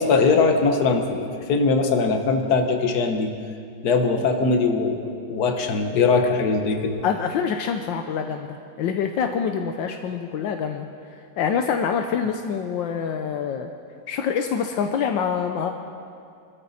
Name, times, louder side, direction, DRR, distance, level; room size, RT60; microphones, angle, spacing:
voice 1, 0.0-3.3 3.8-7.0, left 4 dB, 60° left, 5 dB, 1.7 m, -21 dB
voice 2, 7.0-10.9 11.4-13.7 14.1-15.7, left 7 dB, 80° left, 5 dB, 1.5 m, -26 dB
24.5 x 13.5 x 4.2 m, 2.4 s
omnidirectional pair, 2.0 m